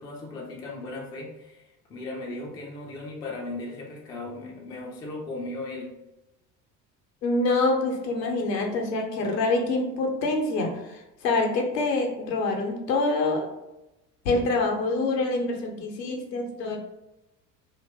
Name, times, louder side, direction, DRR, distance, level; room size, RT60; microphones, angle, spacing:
voice 1, 0.0-6.0, left 2 dB, 10° left, -1 dB, 0.3 m, -37 dB
voice 2, 7.2-13.5 14.2-16.8, left 2 dB, 75° left, 2 dB, 0.8 m, -26 dB
2.7 x 2.5 x 3.2 m, 0.94 s
figure-of-eight pair, 60°, 50 cm